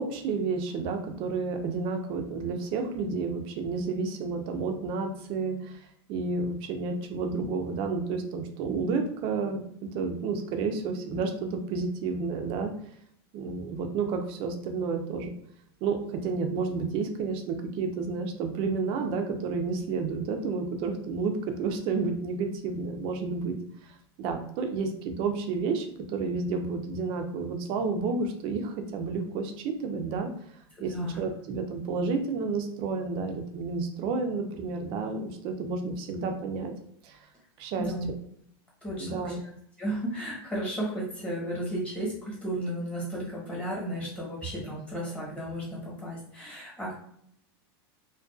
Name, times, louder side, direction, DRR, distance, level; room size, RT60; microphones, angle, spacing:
voice 1, 0.0-5.8 6.1-9.6 9.9-12.7 13.3-15.3 15.8-23.6 23.8-23.9 24.2-30.3 30.8-36.7 37.0-37.2 37.6-37.9 39.0-39.4, right 4 dB, 45° right, 5 dB, 0.4 m, -31 dB
voice 2, 38.8-39.4 39.8-46.9, right 1 dB, 10° left, -6 dB, 1.0 m, -34 dB
2.5 x 2.2 x 2.3 m, 0.69 s
supercardioid pair, 140°, 13 cm